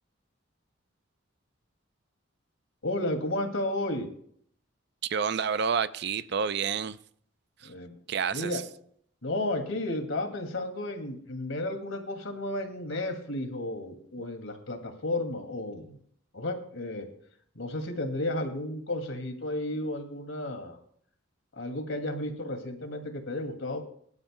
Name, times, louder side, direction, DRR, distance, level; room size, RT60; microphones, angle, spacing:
voice 1, 2.8-4.1 7.6-8.0 8.3-8.6 9.2-16.0 16.3-17.1 17.5-20.8 21.5-23.8, left 1 dB, 75° left, 2.3 m, -33 dB
voice 2, 5.0-7.0 7.6-7.7 8.1-8.6, right 6 dB, 55° right, 0.5 m, -29 dB
23.0 x 12.0 x 2.2 m
head